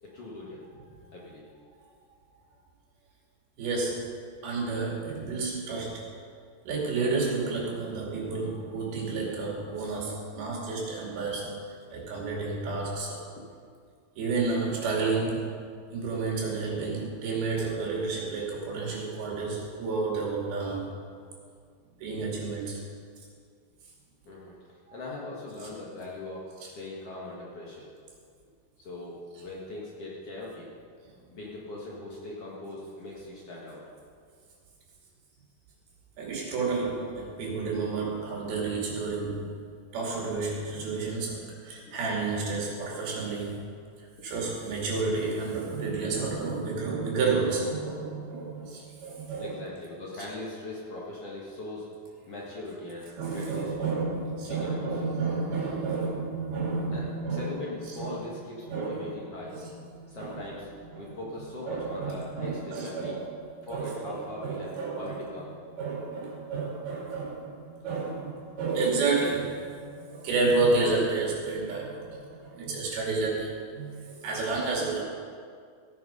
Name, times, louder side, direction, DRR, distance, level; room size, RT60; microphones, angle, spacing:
voice 1, 0.0-0.6 1.1-1.5 13.4-13.5 24.2-27.9 28.8-30.7 31.3-33.8 41.9-42.0 43.0-43.1 49.4-51.9 52.3-54.0 54.4-55.1 56.9-59.6 60.1-63.2 63.6-65.5 66.4-66.6, left 2 dB, 45° left, -5 dB, 2.2 m, -40 dB
voice 2, 3.6-4.1 4.4-6.1 6.6-13.2 14.2-15.5 15.9-20.9 22.0-22.8 24.9-25.0 25.6-25.7 36.2-39.5 39.9-43.6 44.0-49.6 53.2-57.7 58.0-58.1 58.6-59.1 59.5-60.4 60.9-61.1 61.7-65.3 65.8-75.0, right 3 dB, 75° right, -3 dB, 4.4 m, -31 dB
15.5 x 9.3 x 5.4 m, 2.1 s
omnidirectional pair, 4.4 m